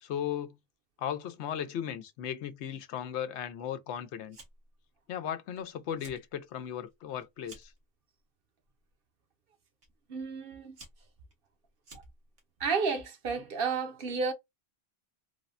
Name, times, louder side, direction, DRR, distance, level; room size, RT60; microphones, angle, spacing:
voice 1, 0.0-0.6 1.0-4.4 5.1-7.7, left 9 dB, 90° left, 0.9 m, -36 dB
Fire, 4.3-4.8 5.1-5.6 5.9-6.3 6.7-7.8 8.6-8.9 9.8-9.9 10.5-12.4, right 2 dB, 90° right, 1.4 m, -53 dB
voice 2, 10.1-10.8 12.6-14.3, right 5 dB, 60° right, 0.8 m, -31 dB
3.3 x 2.0 x 2.4 m
omnidirectional pair, 1.1 m